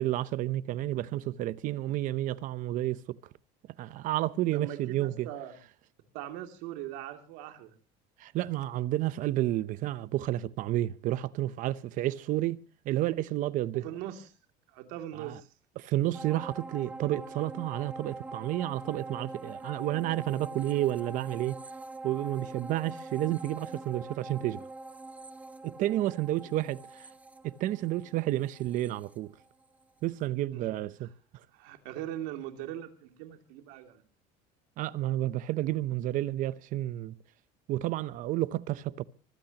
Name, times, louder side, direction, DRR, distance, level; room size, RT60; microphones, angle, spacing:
voice 1, 0.0-3.2 3.8-5.3 8.2-12.6 12.8-13.8 15.1-15.4 15.8-21.6 22.0-24.6 25.6-27.1 27.4-29.3 30.0-31.1 34.8-37.2 37.7-39.0, right 14 dB, 45° right, 0.7 m, -31 dB
voice 2, 4.5-5.5 6.1-7.7 13.7-14.3 14.7-15.5 26.1-26.2 30.5-30.8 31.5-34.0, right 12 dB, 75° right, 2.7 m, -40 dB
sound 1, 16.1-29.8 30.2-30.3, right 2 dB, 10° right, 0.7 m, -44 dB
25.0 x 15.5 x 2.9 m
cardioid pair, 155°, 18 cm